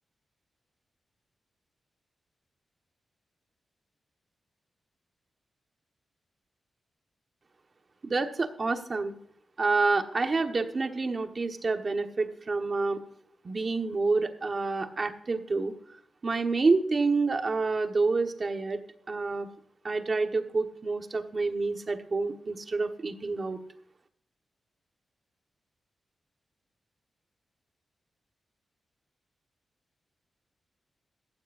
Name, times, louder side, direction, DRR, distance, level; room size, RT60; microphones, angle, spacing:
voice 1, 8.0-9.1 9.6-13.0 13.4-15.7 16.2-18.8 19.1-19.5 19.8-23.6, right 3 dB, 35° right, 6 dB, 1.3 m, -28 dB
15.5 x 14.5 x 2.6 m, 0.65 s
wide cardioid pair, 170°, 0 cm